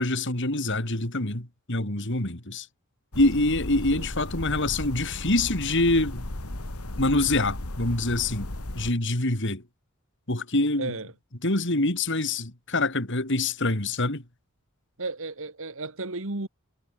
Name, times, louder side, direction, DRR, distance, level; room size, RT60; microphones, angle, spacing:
voice 1, 0.0-2.7 3.2-6.3 7.0-8.5 8.8-9.6 10.3-10.9 11.4-14.2, left 2 dB, 55° left, 3.8 m, -25 dB
sound 1, 3.1-8.9, left 1 dB, 85° left, 2.5 m, -35 dB
voice 2, 10.8-11.1 15.0-16.5, right 3 dB, 65° right, 2.0 m, -33 dB
head